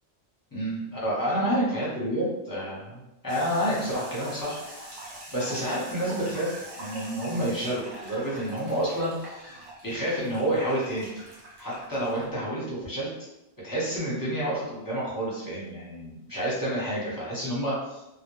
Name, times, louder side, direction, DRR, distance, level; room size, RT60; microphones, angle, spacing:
voice 1, 0.5-4.6 5.3-9.6 9.8-11.1 11.6-13.1 13.6-18.0, right 1 dB, 20° left, -6 dB, 0.7 m, -29 dB
sound 1, 3.3-12.3, right 1 dB, 70° right, 1.0 m, -43 dB
2.2 x 2.2 x 3.0 m, 0.90 s
omnidirectional pair, 1.2 m